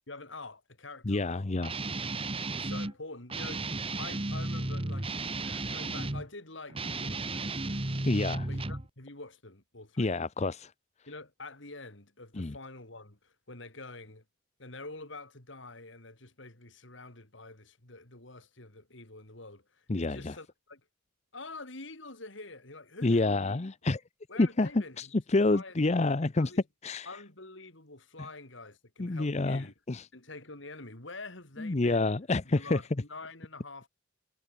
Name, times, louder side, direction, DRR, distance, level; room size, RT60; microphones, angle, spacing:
voice 1, 0.1-1.5 2.5-8.1 8.5-10.2 11.1-14.2 14.6-20.8 21.3-23.6 24.3-25.1 25.5-26.6 27.1-29.7 30.1-32.1 32.5-33.9, left 3 dB, 65° left, 3.8 m, -47 dB
voice 2, 1.1-1.7 8.1-8.5 10.0-10.7 12.3-12.5 19.9-20.3 23.0-24.0 24.4-24.7 25.0-26.5 26.8-27.1 29.0-30.1 31.6-32.8, left 2 dB, 35° left, 0.6 m, -28 dB
Guitar, 1.6-2.9 3.3-6.3 6.7-8.9, right 2 dB, 30° right, 1.5 m, -34 dB
head